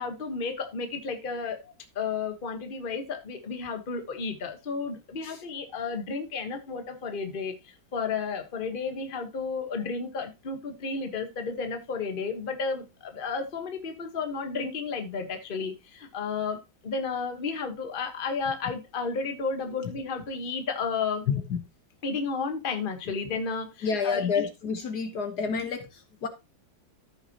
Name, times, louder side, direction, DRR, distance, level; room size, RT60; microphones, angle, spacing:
voice 1, 0.0-1.6 1.9-21.3 22.0-24.5, left 4 dB, 30° left, 1.3 m, -32 dB
voice 2, 21.3-21.6 23.8-26.3, left 6 dB, 60° left, 1.6 m, -29 dB
14.0 x 5.8 x 2.9 m
omnidirectional pair, 2.1 m